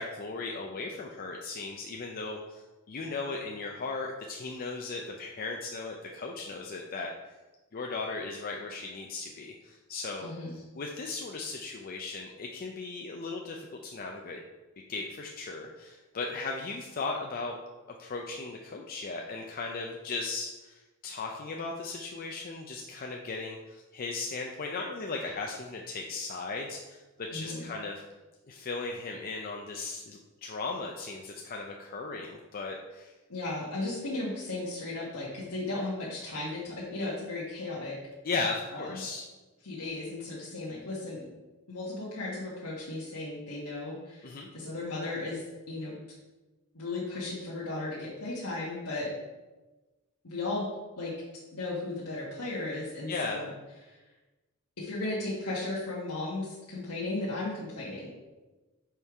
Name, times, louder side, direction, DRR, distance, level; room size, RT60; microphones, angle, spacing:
voice 1, 0.0-7.1 7.7-10.3 10.7-14.4 14.9-17.6 18.0-28.0 28.5-33.1 38.2-39.2 44.2-44.5 53.1-53.4, left 3 dB, 40° left, 1 dB, 0.5 m, -37 dB
voice 2, 10.2-10.6 27.3-27.7 33.3-38.0 38.7-39.0 39.6-41.3 41.7-45.9 46.7-49.1 50.2-50.7 51.0-51.1 51.5-53.5 53.8-54.0 54.8-58.1, left 2 dB, 80° left, -7 dB, 1.4 m, -35 dB
5.5 x 4.5 x 4.7 m, 1.2 s
head